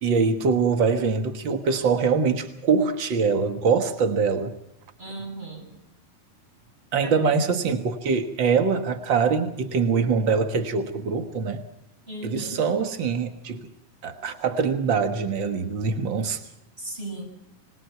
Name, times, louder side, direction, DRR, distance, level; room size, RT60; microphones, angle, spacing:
voice 1, 0.0-4.5 6.9-11.6 12.2-13.7 14.0-16.4, right 5 dB, 75° right, 8 dB, 1.1 m, -23 dB
voice 2, 5.0-5.8 7.0-7.1 12.1-12.6 16.8-17.2, right 1 dB, 15° right, 2 dB, 7.5 m, -36 dB
26.0 x 21.0 x 5.8 m, 0.81 s
omnidirectional pair, 4.4 m